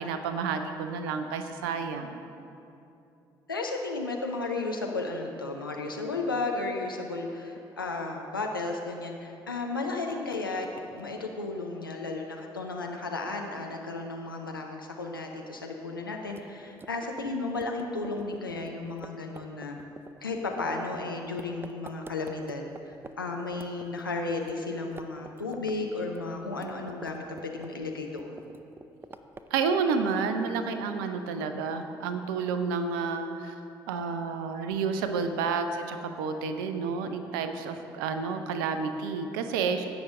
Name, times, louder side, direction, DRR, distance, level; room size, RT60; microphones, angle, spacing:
voice 1, 0.0-2.3 29.5-33.5 33.9-39.9, right 5 dB, 70° right, 8 dB, 0.6 m, -30 dB
voice 2, 3.5-10.7 10.9-19.8 20.2-28.5 31.5-31.7 38.5-38.6, left 3 dB, 90° left, 1 dB, 0.6 m, -34 dB
sound 1, 16.3-23.1 23.4-24.6 24.8-25.8 26.0-27.9 28.2-29.6, right 3 dB, 20° right, 0.5 m, -47 dB
16.5 x 6.0 x 3.7 m, 2.7 s
figure-of-eight pair, 45°, 11 cm